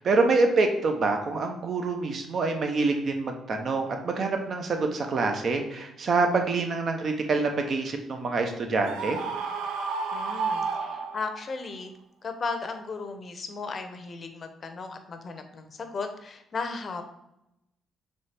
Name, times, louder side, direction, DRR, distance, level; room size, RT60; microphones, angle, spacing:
voice 1, 0.0-9.2, right 3 dB, 50° right, 4 dB, 0.7 m, -26 dB
Screaming, 8.8-11.5, right 4 dB, 90° right, 0.5 m, -31 dB
voice 2, 10.1-11.9 12.2-17.0, left 4 dB, 45° left, 7 dB, 0.6 m, -35 dB
4.2 x 3.3 x 3.3 m, 0.84 s
cardioid pair, 90°, 0 cm